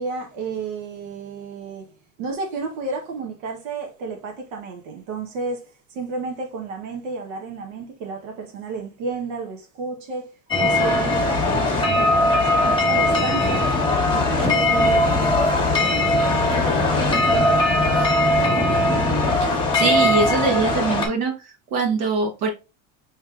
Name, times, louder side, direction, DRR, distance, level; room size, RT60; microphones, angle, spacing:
voice 1, 0.0-1.9 2.2-10.3 10.6-13.7 14.1-18.7, right 4 dB, 80° right, 1.1 m, -33 dB
sound 1, 10.5-21.1, left 2 dB, 15° left, 1.2 m, -19 dB
sound 2, 14.4-19.3, right 3 dB, 10° right, 0.6 m, -36 dB
voice 2, 19.4-22.5, right 4 dB, 60° right, 1.0 m, -23 dB
4.7 x 3.1 x 2.4 m
supercardioid pair, 130°, 38 cm